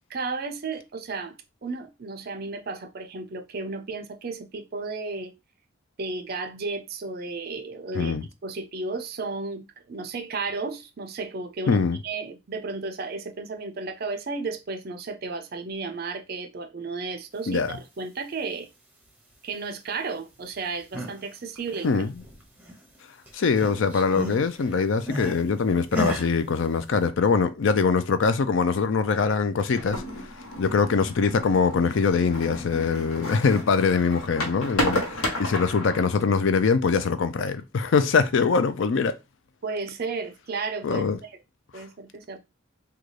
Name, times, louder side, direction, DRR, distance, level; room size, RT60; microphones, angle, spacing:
voice 1, 0.1-1.4 1.6-5.3 6.0-18.7 19.4-21.9 30.7-30.8 39.6-41.3 41.7-42.4, right 4 dB, 45° right, 0.4 m, -33 dB
voice 2, 7.9-8.2 11.7-12.0 17.5-17.8 21.8-22.1 23.3-30.0 30.6-39.2 40.8-41.2 41.7-41.8, left 5 dB, 60° left, 0.4 m, -23 dB
sound 1, 20.7-21.2 21.6-23.0 23.3-25.4 25.9-26.3, equal, 10° right, 0.7 m, -34 dB
sound 2, 29.8-36.1, left 1 dB, 80° left, 1.0 m, -32 dB
3.7 x 2.3 x 3.2 m
head